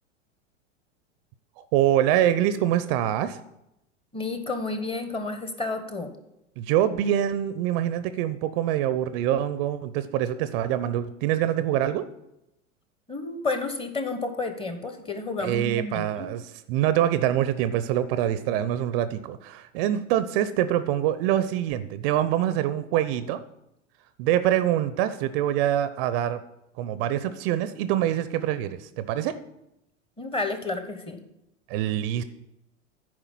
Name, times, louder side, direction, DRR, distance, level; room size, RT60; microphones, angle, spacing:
voice 1, 1.7-3.4 6.6-12.1 15.4-23.4 24.2-26.4 26.8-29.4 31.7-32.2, right 11 dB, 50° right, 13 dB, 0.7 m, -25 dB
voice 2, 4.1-6.1 13.1-16.3 30.2-31.2, left 3 dB, 15° left, 7 dB, 1.3 m, -31 dB
9.4 x 4.9 x 7.4 m, 0.85 s
hypercardioid pair, 100°, 38 cm